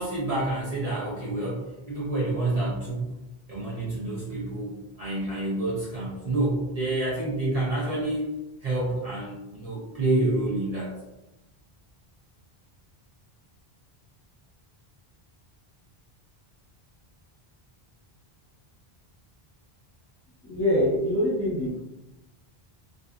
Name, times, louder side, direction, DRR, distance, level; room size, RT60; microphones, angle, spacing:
voice 1, 0.0-3.1 3.5-8.3 8.6-10.9, right 2 dB, 40° right, -8 dB, 0.7 m, -28 dB
voice 2, 20.4-21.8, left 1 dB, 15° left, -9 dB, 0.8 m, -24 dB
2.6 x 2.4 x 2.3 m, 0.96 s
omnidirectional pair, 1.0 m